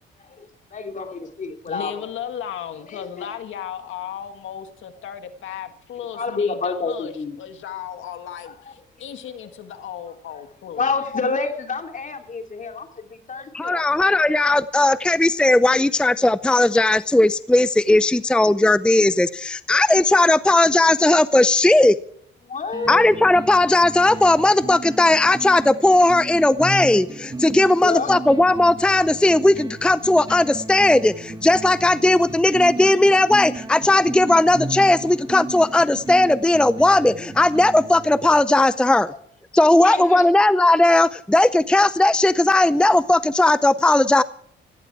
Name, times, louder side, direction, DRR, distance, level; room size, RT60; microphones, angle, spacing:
voice 1, 0.2-2.1 2.8-3.4 6.1-7.4 8.4-9.1 10.0-10.1 10.7-14.2 22.4-23.1 27.8-28.3 39.0-39.2 39.7-40.4, left 4 dB, 40° left, 4 dB, 3.1 m, -29 dB
voice 2, 1.7-7.1 7.4-10.9, left 9 dB, 80° left, 8 dB, 1.8 m, -35 dB
voice 3, 13.5-22.0 22.9-39.1 39.5-44.2, left 2 dB, 5° left, 14 dB, 0.6 m, -17 dB
sound 1, 22.7-38.7, right 2 dB, 20° right, 2.0 m, -35 dB
17.5 x 16.5 x 4.7 m, 0.65 s
cardioid pair, 90°, 20 cm